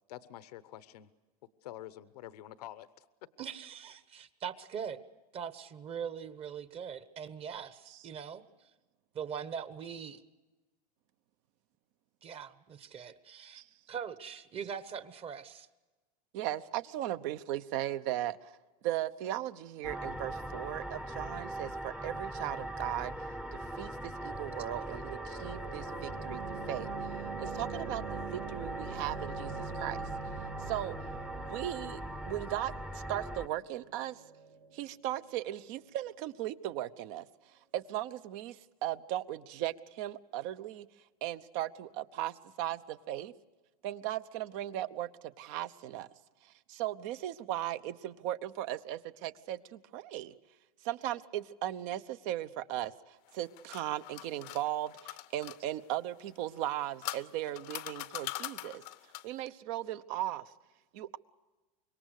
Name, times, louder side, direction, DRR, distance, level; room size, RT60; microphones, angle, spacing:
voice 1, 0.1-1.1 1.6-3.1, left 13 dB, 80° left, 1.0 m, -47 dB
voice 2, 3.4-5.0 5.3-8.4 9.1-10.2 12.2-13.6 13.9-15.7, right 7 dB, 30° right, 1.2 m, -41 dB
voice 3, 16.3-18.6 18.8-23.1 23.5-26.9 27.4-30.0 30.7-31.0 31.5-34.2 34.7-37.3 37.7-40.9 41.2-43.3 43.8-46.1 46.4-50.3 50.8-58.8 59.2-60.5 60.9-61.2, right 13 dB, 55° right, 1.0 m, -37 dB
sound 1, 19.8-33.5, right 1 dB, 5° right, 0.8 m, -40 dB
sound 2, 24.1-36.1, right 6 dB, 85° right, 1.9 m, -45 dB
sound 3, 53.3-55.6 56.6-59.4, left 18 dB, 50° left, 0.8 m, -42 dB
25.5 x 22.5 x 6.6 m
supercardioid pair, 130°, 20 cm